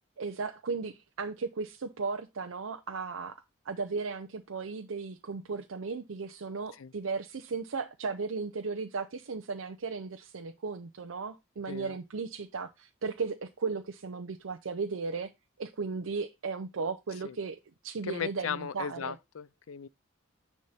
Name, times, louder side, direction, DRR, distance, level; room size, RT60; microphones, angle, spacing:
voice 1, 0.2-3.4 3.7-15.3 15.6-17.6 17.8-19.2, right 4 dB, 90° right, 0.6 m, -36 dB
voice 2, 18.0-19.9, left 7 dB, 90° left, 0.5 m, -37 dB
9.5 x 3.5 x 4.2 m
head